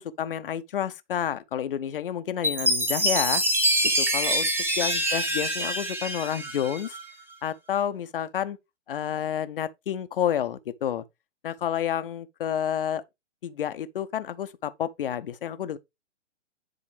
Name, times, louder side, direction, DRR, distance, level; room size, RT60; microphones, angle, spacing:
voice 1, 0.0-3.4 4.0-4.5 4.8-7.0 7.4-8.6 8.9-11.0 11.4-13.0 13.4-15.8, left 9 dB, 50° left, 0.8 m, -30 dB
Chime, 2.4-7.0, right 1 dB, 5° right, 1.2 m, -25 dB
9.9 x 4.1 x 3.4 m
figure-of-eight pair, 120°, 35 cm